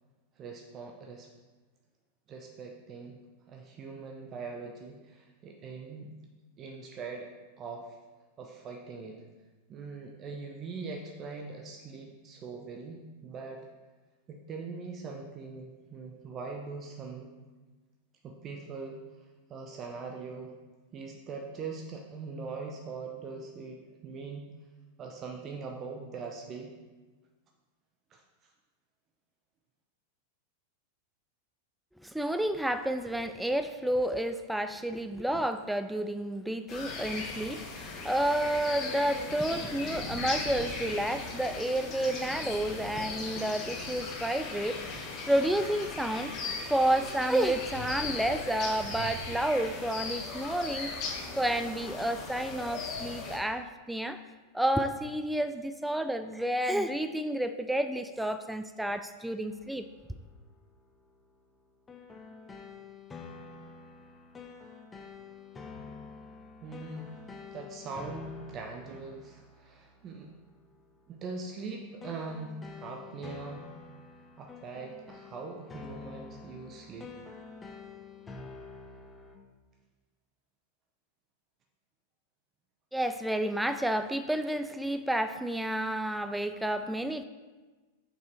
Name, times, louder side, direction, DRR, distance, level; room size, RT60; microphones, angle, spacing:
voice 1, 0.4-1.3 2.3-3.2 3.5-6.1 6.6-7.3 7.6-8.0 8.4-9.3 9.7-13.7 14.3-17.3 18.2-19.0 19.5-20.5 20.9-24.4 25.0-26.7 28.1-28.5 66.6-67.2 67.5-70.3 71.1-73.6 74.4-77.1, right 4 dB, 30° right, 1 dB, 0.7 m, -42 dB
voice 2, 32.0-44.8 45.3-46.3 46.7-50.9 51.3-54.2 54.5-59.8 82.9-87.2, right 1 dB, 5° right, 9 dB, 0.3 m, -30 dB
sound 1, 36.7-53.4, left 3 dB, 35° left, 1.5 m, -38 dB
sound 2, 59.5-79.4, left 4 dB, 15° left, 0.8 m, -49 dB
6.6 x 5.5 x 4.3 m, 1.3 s
figure-of-eight pair, 90°, 0 cm